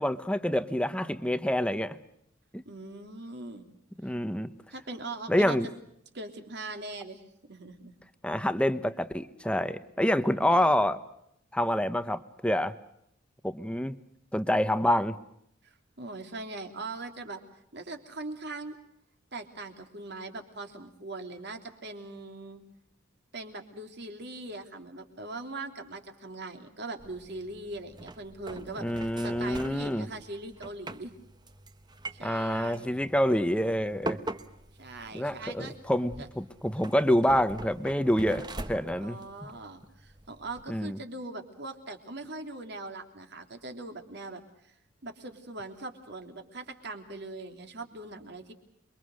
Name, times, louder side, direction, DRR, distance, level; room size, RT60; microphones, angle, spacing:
voice 1, 0.0-2.0 2.5-2.6 4.0-4.5 5.3-5.7 8.2-11.0 11.5-12.7 13.4-13.9 14.3-15.2 28.8-30.1 32.2-34.2 35.1-39.2 40.7-41.0, equal, 5° left, 11 dB, 1.0 m, -27 dB
voice 2, 2.6-3.7 4.7-5.6 6.1-7.9 10.5-10.7 15.6-17.4 17.7-18.8 19.3-22.6 23.3-31.1 32.1-33.0 34.8-35.7 36.2-36.3 39.0-44.7 45.0-48.5, right 2 dB, 55° right, 5 dB, 3.1 m, -41 dB
sound 1, 27.0-40.6, right 2 dB, 20° right, 1.1 m, -43 dB
28.5 x 23.5 x 6.4 m, 0.74 s
head